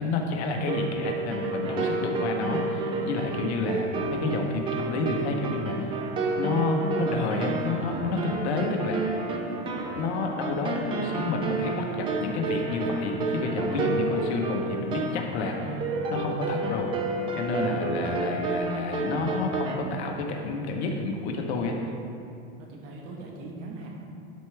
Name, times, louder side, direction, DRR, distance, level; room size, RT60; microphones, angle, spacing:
voice 1, 0.0-6.1 6.4-9.2 10.0-15.8 16.1-16.9 17.3-21.8, left 3 dB, 65° left, 2 dB, 1.1 m, -30 dB
sound 1, 0.6-19.8, right 3 dB, 15° right, 0.4 m, -30 dB
voice 2, 17.5-17.9 22.6-24.0, right 2 dB, 40° right, -1 dB, 1.3 m, -41 dB
11.5 x 4.5 x 3.4 m, 2.5 s
supercardioid pair, 145°, 36 cm